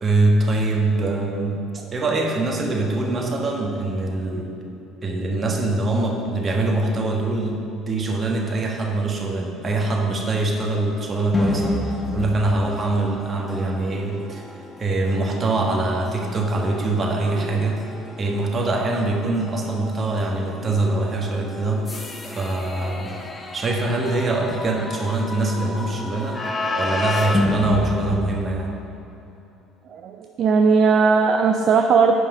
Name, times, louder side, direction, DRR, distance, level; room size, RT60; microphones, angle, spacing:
voice 1, 0.0-1.6 1.9-4.5 5.0-14.5 14.8-17.8 18.2-23.2 23.5-26.4 26.8-28.8, right 2 dB, 40° right, 1 dB, 1.5 m, -23 dB
sound 1, 11.3-29.1, left 1 dB, 25° left, 1.0 m, -30 dB
voice 2, 29.9-32.1, right 5 dB, 55° right, 5 dB, 0.4 m, -17 dB
8.4 x 5.6 x 5.4 m, 2.9 s
hypercardioid pair, 65°, 0 cm